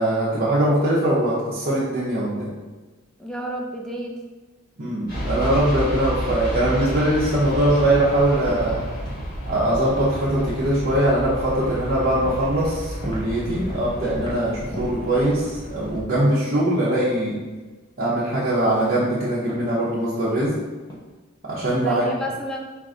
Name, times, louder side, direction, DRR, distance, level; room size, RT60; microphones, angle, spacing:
voice 1, 0.0-2.5 4.8-8.9 9.5-17.4 18.0-20.6 21.4-22.1, right 1 dB, 45° right, -8 dB, 0.7 m, -22 dB
voice 2, 3.2-4.2 21.7-22.6, right 1 dB, 5° left, 0 dB, 0.4 m, -30 dB
sound 1, 5.1-15.9, equal, 45° left, 1.4 m, -31 dB
sound 2, 8.1-8.2 8.5-8.8 9.1-9.4 9.7-10.0 10.4-10.7 11.8-11.9 12.3-12.6 12.8-13.9 14.2-14.5 14.7-16.2 16.5-16.8 17.1-17.2 18.3-19.0 19.5-19.7 20.2-20.5 20.8-21.0, left 1 dB, 20° left, 0.8 m, -36 dB
4.6 x 2.5 x 3.6 m, 1.3 s
head